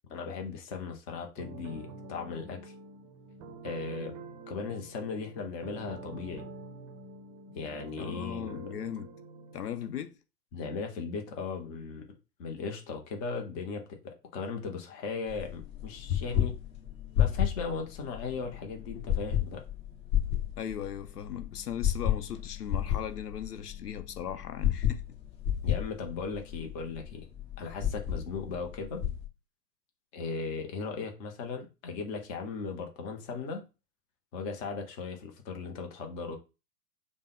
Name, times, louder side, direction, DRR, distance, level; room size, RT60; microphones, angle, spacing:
voice 1, 0.1-2.7 3.6-4.1 4.5-6.5 7.5-8.6 10.5-12.0 12.4-16.6 17.2-19.6 25.6-27.3 27.6-29.0 30.1-33.6 34.3-36.4, left 4 dB, 20° left, 0.6 m, -37 dB
sound 1, 1.4-9.9, right 3 dB, 25° right, 0.6 m, -47 dB
voice 2, 8.0-9.1 9.5-10.1 20.6-25.0, left 9 dB, 70° left, 0.7 m, -38 dB
sound 2, 15.3-29.3, left 10 dB, 40° left, 1.3 m, -32 dB
5.1 x 2.1 x 3.5 m
figure-of-eight pair, 110°, 49 cm